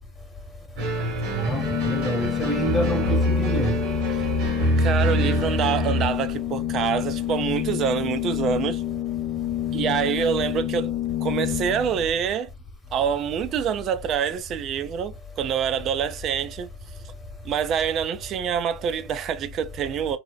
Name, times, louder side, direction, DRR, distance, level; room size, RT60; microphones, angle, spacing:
sound 1, 0.8-6.1, equal, 65° right, 1.2 m, -25 dB
voice 1, 1.3-3.8, right 1 dB, 20° left, 1.1 m, -27 dB
Organ, 1.4-12.1, left 13 dB, 55° left, 0.4 m, -28 dB
voice 2, 4.8-8.9 9.7-12.5 12.9-16.7 17.4-20.2, right 8 dB, 50° right, 0.4 m, -26 dB
2.7 x 2.0 x 2.3 m
hypercardioid pair, 90°, 0 cm